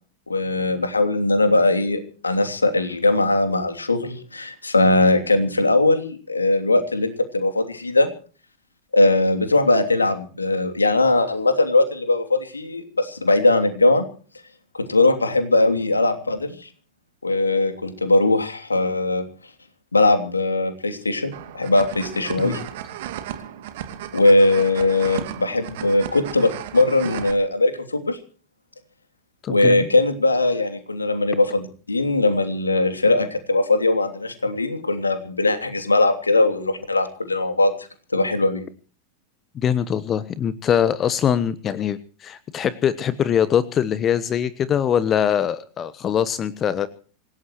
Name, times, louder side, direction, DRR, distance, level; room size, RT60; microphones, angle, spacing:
voice 1, 0.3-8.1 8.9-14.0 14.9-16.7 17.2-19.2 19.9-22.6 24.1-28.2 29.5-37.7 38.1-38.7, left 2 dB, 80° left, 7 dB, 3.0 m, -20 dB
sound 1, 21.3-27.3, right 11 dB, 55° right, 2.6 m, -35 dB
voice 2, 29.4-29.9 39.5-46.9, left 9 dB, 25° left, 17 dB, 1.1 m, -22 dB
26.5 x 17.0 x 3.1 m, 0.41 s
figure-of-eight pair, 90°, 0 cm